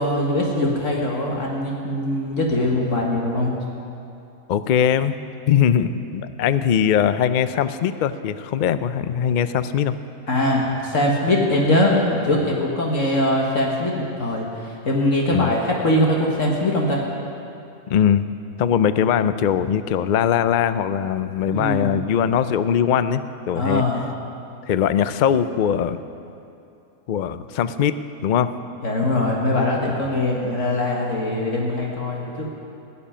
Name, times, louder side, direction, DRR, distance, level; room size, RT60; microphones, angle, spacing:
voice 1, 0.0-3.5 10.3-17.0 21.5-21.9 23.5-24.0 28.8-32.5, left 1 dB, 60° left, -2 dB, 1.9 m, -22 dB
voice 2, 4.5-5.2 5.5-9.9 15.3-15.5 17.9-23.9 24.7-26.0 27.1-28.5, left 8 dB, 80° left, 12 dB, 0.4 m, -21 dB
17.5 x 6.9 x 10.0 m, 2.7 s
omnidirectional pair, 1.5 m